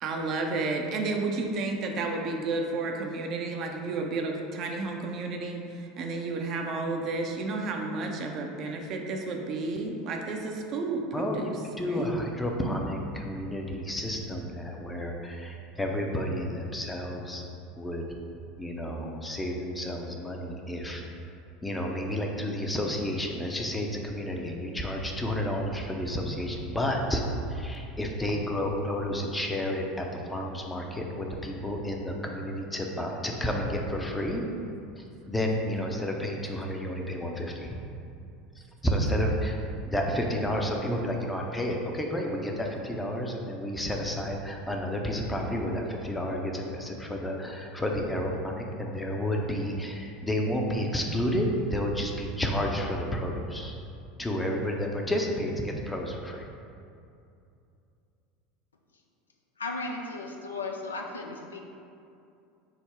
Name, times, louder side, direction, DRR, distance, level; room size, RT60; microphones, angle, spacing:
voice 1, 0.0-11.5 11.8-12.1, right 3 dB, 50° right, 2 dB, 0.4 m, -31 dB
voice 2, 11.1-11.5 11.8-17.5 17.8-18.0 18.6-21.0 21.6-27.2 27.5-34.4 35.0-37.8 38.8-39.6 39.9-53.8 54.2-56.5, equal, 10° left, 1 dB, 0.5 m, -31 dB
voice 3, 59.6-61.6, left 3 dB, 90° left, 2 dB, 0.3 m, -35 dB
3.7 x 2.1 x 4.4 m, 2.6 s
hypercardioid pair, 80°, 0 cm